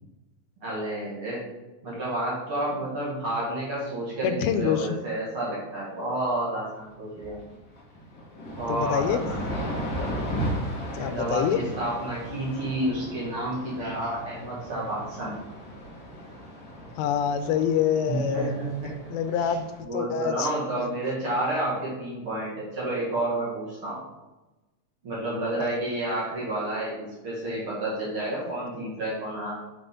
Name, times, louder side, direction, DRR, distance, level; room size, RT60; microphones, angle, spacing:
voice 1, 0.6-1.4 1.8-7.4 8.5-9.9 10.9-15.5 18.0-18.9 19.4-19.6 19.8-24.0 25.0-29.5, right 1 dB, 45° right, -6 dB, 2.1 m, -30 dB
voice 2, 4.2-4.9 8.7-9.2 10.9-11.6 17.0-18.5 18.8-20.5 25.6-25.7, left 8 dB, 85° left, 9 dB, 2.4 m, -26 dB
sound 1, 6.8-6.9 7.2-19.8, equal, 55° left, 1.0 m, -36 dB
7.1 x 5.1 x 3.6 m, 1.1 s
omnidirectional pair, 4.1 m